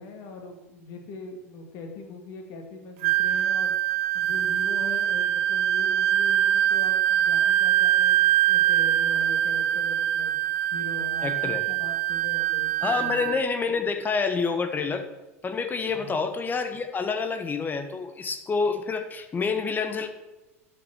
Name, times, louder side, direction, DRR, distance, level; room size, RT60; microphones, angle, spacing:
voice 1, 0.0-3.7 4.1-10.4 10.7-13.3 15.9-16.2, left 3 dB, 55° left, 3 dB, 2.4 m, -41 dB
Wind instrument woodwind instrument, 3.0-13.4, right 12 dB, 60° right, 0.6 m, -23 dB
voice 2, 11.2-11.6 12.8-15.0 15.4-20.1, left 5 dB, 25° left, 8 dB, 1.4 m, -28 dB
12.0 x 6.1 x 6.1 m, 1.0 s
hypercardioid pair, 85°, 8 cm